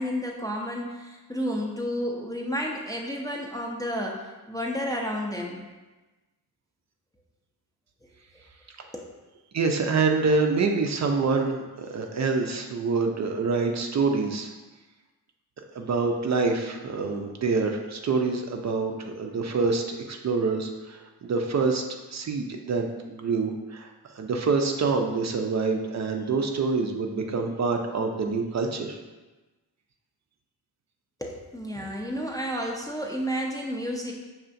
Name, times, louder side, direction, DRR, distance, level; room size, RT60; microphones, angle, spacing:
voice 1, 0.0-4.2 4.5-5.7 8.9-9.1 31.2-34.1, equal, 10° left, -1 dB, 0.4 m, -31 dB
voice 2, 9.5-14.5 15.7-21.8 22.1-29.0, right 4 dB, 45° right, 3 dB, 0.5 m, -26 dB
5.6 x 2.4 x 2.5 m, 1.2 s
cardioid pair, 75°, 41 cm